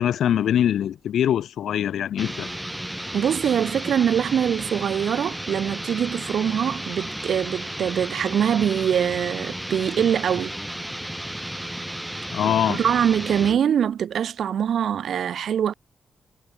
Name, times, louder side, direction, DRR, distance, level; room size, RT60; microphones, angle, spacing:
voice 1, 0.0-2.5 12.3-12.8, left 10 dB, 90° left, 1.1 m, -23 dB
sound 1, 2.2-13.6, right 1 dB, 5° right, 2.6 m, -33 dB
voice 2, 3.1-10.6 12.7-15.7, right 8 dB, 75° right, 0.6 m, -23 dB
cardioid pair, 100°, 0 cm